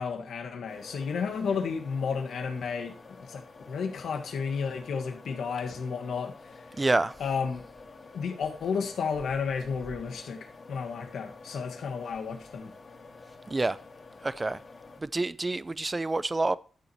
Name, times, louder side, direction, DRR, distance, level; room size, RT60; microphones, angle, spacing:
voice 1, 0.0-6.7 7.2-7.6 8.1-12.7, left 5 dB, 85° left, 1.7 m, -32 dB
sound 1, 0.7-15.0, left 3 dB, 50° left, 2.2 m, -50 dB
voice 2, 6.8-7.1 13.5-13.8 14.2-14.6 15.0-16.6, right 2 dB, 25° right, 0.5 m, -27 dB
12.5 x 7.0 x 3.0 m
cardioid pair, 100°, 0 cm